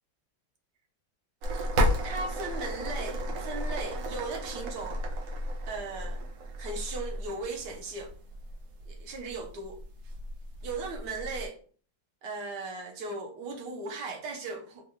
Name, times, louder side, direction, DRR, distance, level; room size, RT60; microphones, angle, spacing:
sound 1, 1.4-11.5, equal, 90° right, 1.4 m, -33 dB
voice 1, 2.0-5.0 5.7-6.3 6.6-8.1 8.9-9.8 10.6-11.6 12.2-14.8, right 3 dB, 70° right, 1.3 m, -37 dB
3.7 x 2.3 x 2.9 m
omnidirectional pair, 2.0 m